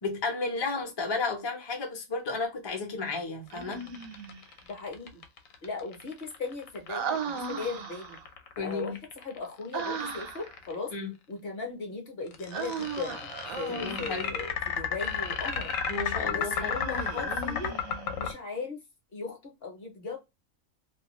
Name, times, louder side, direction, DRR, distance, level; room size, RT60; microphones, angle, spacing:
voice 1, 0.0-3.8 8.6-8.9 10.9-11.1 13.7-14.3 15.9-16.7, left 3 dB, 35° left, 0.4 m, -33 dB
sound 1, 3.5-10.8 12.3-18.3, left 6 dB, 75° left, 1.0 m, -33 dB
Human voice, 3.5-4.4 6.9-8.2 9.7-10.5 12.5-14.3 16.6-18.2, right 5 dB, 80° right, 1.0 m, -36 dB
voice 2, 4.7-5.2 5.6-8.2 8.6-10.9 11.3-15.7 16.3-17.8 18.2-18.8 19.1-20.2, left 4 dB, 50° left, 0.8 m, -38 dB
2.5 x 2.2 x 2.9 m
omnidirectional pair, 1.5 m